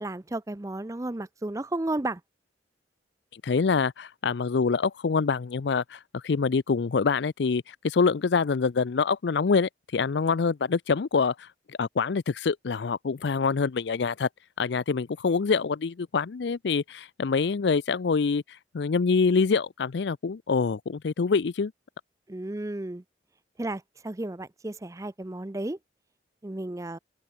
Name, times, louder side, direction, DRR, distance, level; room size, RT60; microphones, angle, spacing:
voice 1, 0.0-2.2 22.3-23.0 23.6-25.8 26.4-27.0, right 2 dB, 15° right, 0.5 m, -33 dB
voice 2, 3.3-14.3 14.6-21.7, left 5 dB, 70° left, 0.5 m, -26 dB
open air
head